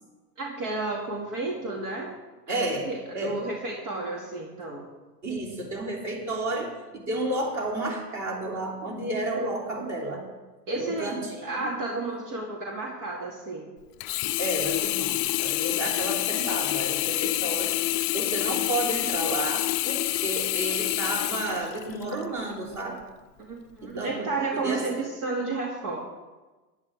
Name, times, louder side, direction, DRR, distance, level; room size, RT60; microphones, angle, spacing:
voice 1, 0.4-2.1 2.5-4.9 10.7-11.2 11.4-13.7 23.4-26.0, right 3 dB, 65° right, -1 dB, 2.5 m, -32 dB
voice 2, 2.5-2.9 3.1-3.4 5.2-10.2 10.7-11.7 14.4-17.8 18.1-23.0 23.8-24.9, right 2 dB, 35° right, -1 dB, 3.5 m, -31 dB
Sink (filling or washing), 14.0-22.2 22.8-22.9, left 18 dB, 35° left, 0.4 m, -27 dB
14.5 x 11.0 x 3.7 m, 1.2 s
hypercardioid pair, 110°, 49 cm